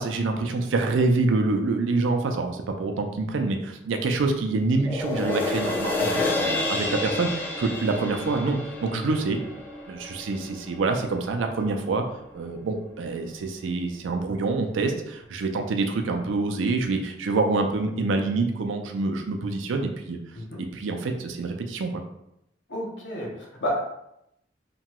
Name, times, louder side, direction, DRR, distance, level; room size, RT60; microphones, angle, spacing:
voice 1, 0.0-9.4 9.9-12.0 12.3-20.2 20.7-22.0, right 3 dB, 85° right, 5 dB, 0.4 m, -26 dB
sound 1, 4.8-11.3 11.8-11.9, left 2 dB, 10° left, 0.3 m, -30 dB
voice 2, 22.7-23.8, equal, 65° left, -2 dB, 0.8 m, -31 dB
2.9 x 2.2 x 2.9 m, 0.81 s
head